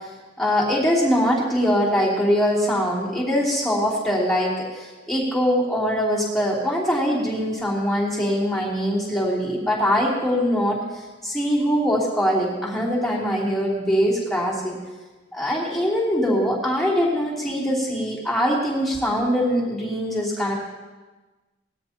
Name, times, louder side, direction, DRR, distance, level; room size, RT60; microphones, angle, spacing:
voice 1, 0.4-10.8 11.2-14.8 15.3-20.5, equal, ahead, -7 dB, 3.0 m, -22 dB
19.5 x 13.5 x 2.9 m, 1.2 s
head